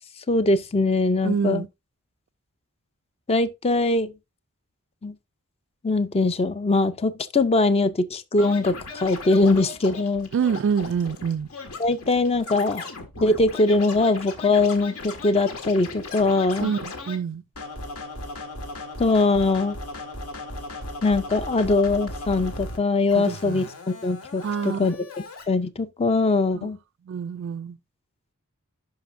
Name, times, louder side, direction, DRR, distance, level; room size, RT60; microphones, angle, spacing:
voice 1, 0.3-1.6 3.3-4.1 5.0-5.1 5.8-10.3 11.8-12.9 13.2-16.7 19.0-19.8 21.0-25.0 25.5-26.8, left 3 dB, 25° left, 0.5 m, -22 dB
voice 2, 1.2-1.7 10.3-11.5 16.6-17.4 23.2-23.7 24.4-24.8 26.5-26.7 27.0-27.8, right 6 dB, 55° right, 0.3 m, -26 dB
Scratching (performance technique), 8.4-17.2 17.6-22.8 23.1-25.4, left 2 dB, 75° left, 1.7 m, -37 dB
11.5 x 4.9 x 2.5 m
head